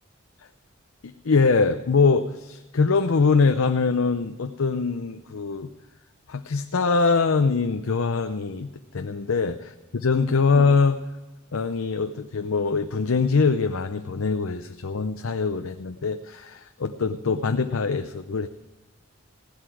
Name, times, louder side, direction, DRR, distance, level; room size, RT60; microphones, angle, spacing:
voice 1, 1.0-5.7 6.3-8.7 8.9-11.0 11.5-18.5, left 4 dB, 80° left, 7 dB, 0.6 m, -23 dB
16.0 x 11.5 x 4.7 m, 1.2 s
head